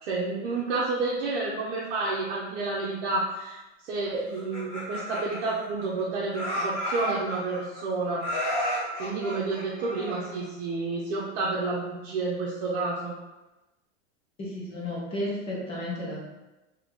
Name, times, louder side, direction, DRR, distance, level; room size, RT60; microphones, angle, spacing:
voice 1, 0.0-3.6 3.8-8.2 9.0-13.1, right 3 dB, 60° right, -5 dB, 0.8 m, -30 dB
Laughter, 4.3-6.0 6.3-7.8 8.2-10.5, equal, 30° left, 1.0 m, -32 dB
voice 2, 14.4-16.3, left 1 dB, 15° left, -5 dB, 0.7 m, -33 dB
3.7 x 2.9 x 3.7 m, 1.0 s
supercardioid pair, 175°, 35 cm